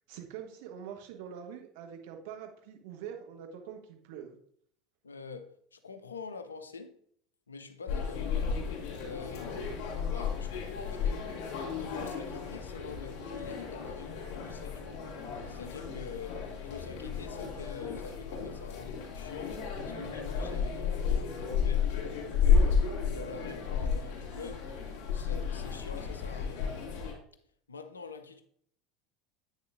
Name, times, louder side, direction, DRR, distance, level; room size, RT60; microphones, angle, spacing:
voice 1, 0.1-4.4, right 8 dB, 55° right, 1.0 m, -44 dB
voice 2, 5.0-6.9 7.5-8.3 9.0-9.6 10.0-11.2 11.8-15.0 15.5-21.9 22.3-24.6 25.1-26.6 27.7-28.4, left 5 dB, 75° left, 0.5 m, -46 dB
sound 1, 7.9-27.1, left 6 dB, 50° left, 2.6 m, -32 dB
8.1 x 6.5 x 2.5 m
figure-of-eight pair, 75°, 0 cm